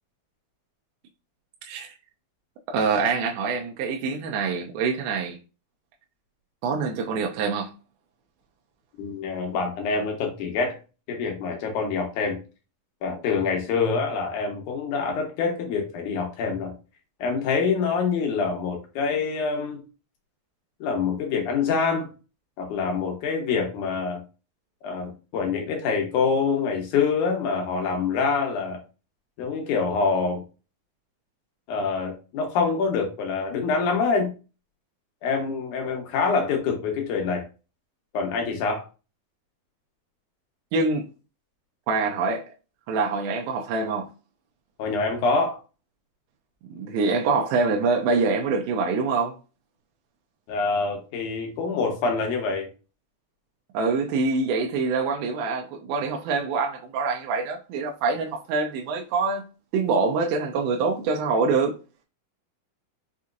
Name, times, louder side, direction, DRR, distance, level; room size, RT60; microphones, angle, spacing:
voice 1, 2.7-5.4 6.6-7.7 40.7-41.1 41.9-42.5 42.9-44.1 46.7-49.4 53.7-59.4 59.7-61.8, right 4 dB, 85° right, 2.4 m, -25 dB
voice 2, 9.0-10.8 11.1-12.4 13.0-16.7 17.2-19.8 20.8-22.1 22.6-24.2 24.8-28.8 29.4-30.4 31.7-34.3 35.2-37.4 38.1-38.8 44.8-45.6 50.5-52.7, left 5 dB, 70° left, 2.3 m, -25 dB
6.0 x 2.8 x 2.4 m
omnidirectional pair, 4.1 m